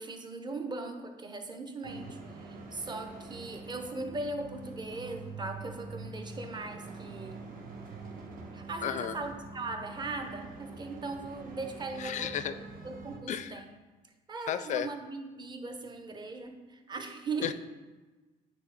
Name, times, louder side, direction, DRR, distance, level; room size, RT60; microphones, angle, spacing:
voice 1, 0.0-7.4 8.5-13.7 14.3-17.5, right 3 dB, 25° right, 5 dB, 0.8 m, -39 dB
sound 1, 1.8-13.2, right 3 dB, 55° right, 1.1 m, -45 dB
voice 2, 8.8-9.2 12.0-12.5 13.3-13.5 14.5-14.9 17.4-17.5, left 9 dB, 45° left, 13 dB, 0.4 m, -33 dB
9.2 x 3.3 x 3.6 m, 1.2 s
cardioid pair, 110°, 17 cm